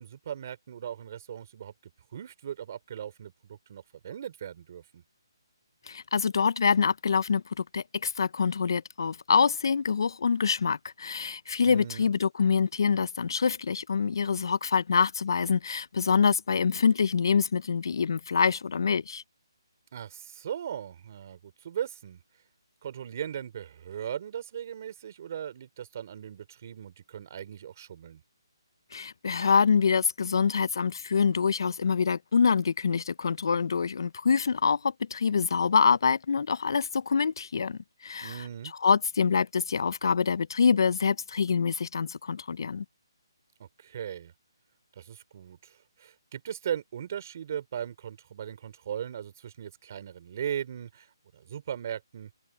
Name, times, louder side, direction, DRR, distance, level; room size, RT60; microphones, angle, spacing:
voice 1, 0.0-5.0 11.6-12.1 19.9-22.2 22.8-28.2 38.2-38.7 43.6-44.3 44.9-52.3, right 9 dB, 40° right, 3.2 m, -38 dB
voice 2, 5.9-19.2 28.9-38.4 38.8-42.8, left 6 dB, 60° left, 0.4 m, -25 dB
open air
hypercardioid pair, 165°, 3 cm